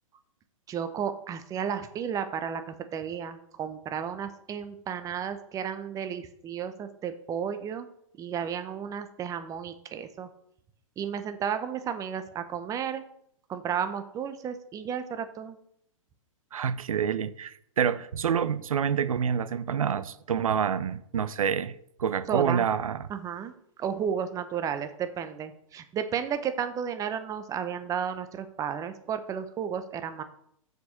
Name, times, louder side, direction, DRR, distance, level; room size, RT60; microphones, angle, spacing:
voice 1, 0.7-7.9 8.2-10.3 11.0-13.0 13.5-15.6 22.3-22.7 23.1-23.5 23.8-30.2, right 8 dB, 20° right, 0.7 m, -33 dB
voice 2, 16.5-21.7 22.0-23.1, right 7 dB, 80° right, 0.6 m, -27 dB
6.5 x 5.1 x 6.4 m
hypercardioid pair, 120°, 18 cm